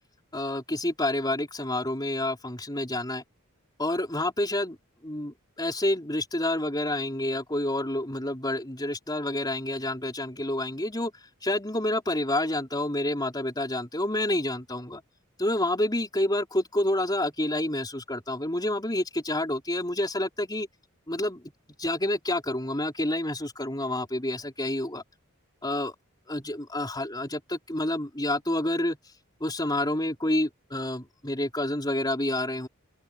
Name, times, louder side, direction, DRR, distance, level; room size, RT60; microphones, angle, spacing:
voice 1, 0.3-3.2 3.8-4.8 5.0-11.1 11.4-15.0 15.4-20.7 21.1-21.4 21.8-25.0 25.6-25.9 26.3-29.0 29.4-32.7, left 1 dB, 20° left, 4.2 m, -28 dB
open air
head